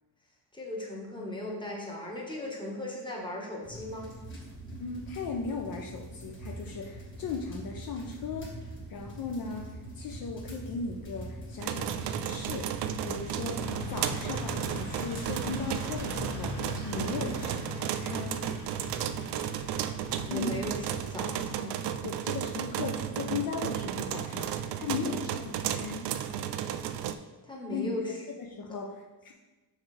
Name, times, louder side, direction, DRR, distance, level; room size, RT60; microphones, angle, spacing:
voice 1, 0.5-4.1 17.0-17.4 20.3-21.8 27.4-28.3 28.7-28.8, left 1 dB, 10° left, -2 dB, 1.2 m, -38 dB
sound 1, 3.6-17.5, right 1 dB, 25° left, 1.6 m, -44 dB
voice 2, 4.8-8.5 8.9-9.7 10.0-13.6 13.9-18.4 20.3-20.6 22.0-26.1 27.7-27.9 28.4-29.3, left 5 dB, 55° left, 1 dB, 0.6 m, -37 dB
sound 2, 11.6-27.1, right 10 dB, 70° right, 0.5 m, -34 dB
sound 3, 13.6-21.5, left 2 dB, 85° left, 1.8 m, -41 dB
6.4 x 4.8 x 3.2 m, 1.2 s
cardioid pair, 130°, 43 cm